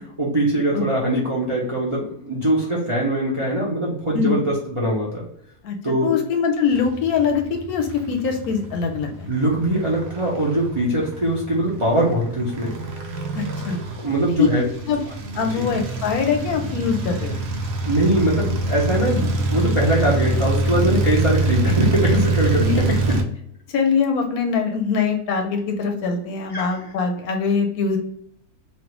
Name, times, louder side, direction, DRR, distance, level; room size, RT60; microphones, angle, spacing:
voice 1, 0.2-5.3 5.8-6.1 9.3-12.8 14.0-14.6 15.5-15.7 17.8-22.7 26.5-26.7, right 1 dB, 55° right, -5 dB, 0.3 m, -22 dB
voice 2, 6.0-9.3 13.3-13.8 14.4-14.5 14.9-15.0 15.3-17.4 22.5-22.8 23.7-28.0, left 6 dB, 75° left, 4 dB, 1.0 m, -23 dB
sound 1, 6.7-23.2, right 2 dB, 85° right, 1.2 m, -25 dB
3.2 x 2.4 x 2.9 m, 0.70 s
omnidirectional pair, 1.7 m